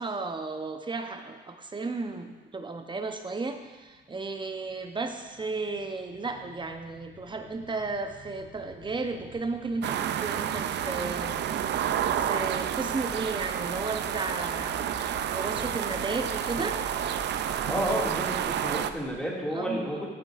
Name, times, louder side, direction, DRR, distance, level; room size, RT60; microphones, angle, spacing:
voice 1, 0.0-11.9 12.2-16.8 19.5-20.0, right 3 dB, 25° right, 6 dB, 0.8 m, -34 dB
sound 1, 3.2-19.1, left 3 dB, 70° left, 2.4 m, -47 dB
sound 2, 9.8-18.9, right 10 dB, 60° right, 0.4 m, -30 dB
voice 2, 17.6-20.1, equal, 5° left, -4 dB, 2.1 m, -31 dB
14.0 x 6.6 x 2.5 m, 1.4 s
cardioid pair, 90°, 20 cm